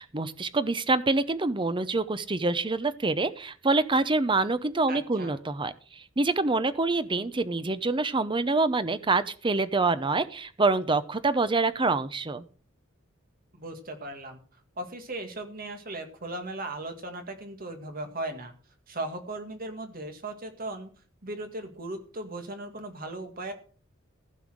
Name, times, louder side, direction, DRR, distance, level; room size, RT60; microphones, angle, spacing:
voice 1, 0.0-12.4, right 3 dB, 25° right, 13 dB, 0.7 m, -26 dB
voice 2, 4.9-5.4 13.5-14.4 14.8-18.5 18.9-20.9 21.2-23.5, right 2 dB, 45° right, 6 dB, 2.1 m, -37 dB
15.0 x 5.6 x 6.3 m, 0.41 s
head